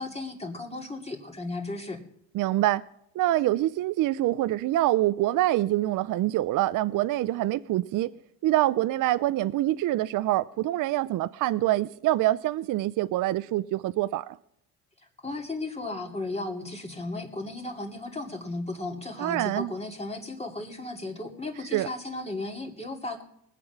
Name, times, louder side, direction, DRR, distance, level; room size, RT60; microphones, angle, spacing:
voice 1, 0.0-2.0 15.2-23.2, left 2 dB, 15° left, 2.5 m, -35 dB
voice 2, 2.3-2.8 3.1-8.1 8.4-14.4 19.2-19.7 21.7-21.9, right 15 dB, 55° right, 0.5 m, -25 dB
20.0 x 7.6 x 6.0 m
supercardioid pair, 90°, 38 cm